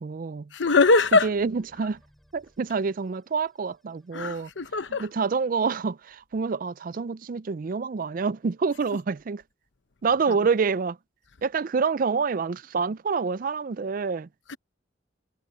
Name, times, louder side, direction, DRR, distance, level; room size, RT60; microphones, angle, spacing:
voice 1, 0.0-0.5 1.2-2.0 2.3-4.5 5.0-9.4 10.0-11.0 11.4-14.3, right 5 dB, 45° right, 0.4 m, -27 dB
voice 2, 0.5-1.3 4.1-5.1 10.3-10.4 14.5-14.6, left 3 dB, 75° left, 0.9 m, -22 dB
sound 1, 0.7-5.0, equal, ahead, 4.4 m, -63 dB
head